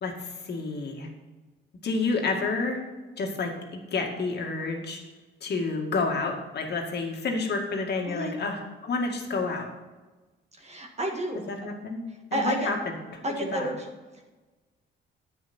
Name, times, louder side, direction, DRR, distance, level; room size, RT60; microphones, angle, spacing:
voice 1, 0.0-1.1 1.8-2.8 3.2-5.0 5.4-9.7 11.5-12.0 12.3-12.8 13.5-13.7, left 3 dB, 55° left, 2 dB, 2.2 m, -29 dB
voice 2, 8.0-8.3 10.6-11.5 12.1-12.7 13.2-13.9, right 1 dB, 35° right, 1 dB, 1.7 m, -31 dB
10.0 x 8.4 x 4.4 m, 1.2 s
cardioid pair, 90°, 20 cm